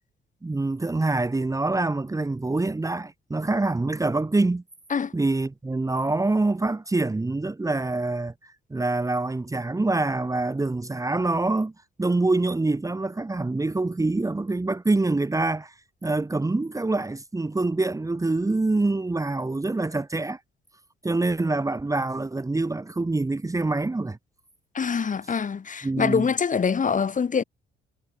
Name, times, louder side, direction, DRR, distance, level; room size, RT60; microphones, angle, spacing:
voice 1, 0.4-4.6 5.1-8.3 8.7-11.7 12.0-15.7 16.0-20.4 21.0-24.2 25.8-26.3, right 2 dB, 15° right, 1.6 m, -25 dB
voice 2, 24.7-27.4, left 6 dB, 40° left, 2.8 m, -24 dB
cardioid pair, 90°, 20 cm